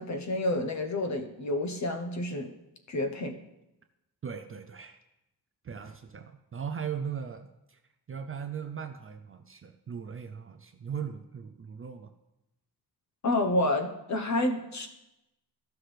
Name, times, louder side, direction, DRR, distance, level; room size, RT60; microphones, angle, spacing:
voice 1, 0.0-2.5 2.9-3.3 13.2-14.9, left 1 dB, 45° left, 6 dB, 1.0 m, -29 dB
voice 2, 4.2-5.0 5.6-7.8 8.1-12.1, right 7 dB, 35° right, 6 dB, 0.4 m, -38 dB
14.5 x 5.8 x 3.3 m, 0.93 s
wide cardioid pair, 160°, 40 cm